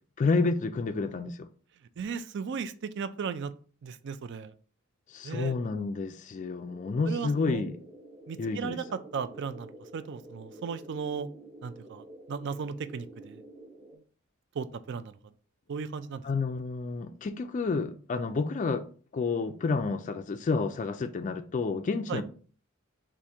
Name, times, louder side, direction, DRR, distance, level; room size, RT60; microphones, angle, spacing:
voice 1, 0.2-1.5 5.1-7.8 8.4-8.8 16.2-18.9 19.1-22.2, left 4 dB, 35° left, 0.3 m, -30 dB
voice 2, 2.0-3.5 3.8-4.5 5.2-5.5 7.1-7.6 8.3-11.3 11.6-13.4 14.6-15.2 15.7-16.2 22.1-22.2, right 6 dB, 55° right, 0.4 m, -36 dB
sound 1, 6.6-14.0, right 1 dB, 25° right, 1.1 m, -49 dB
4.2 x 2.5 x 4.7 m
head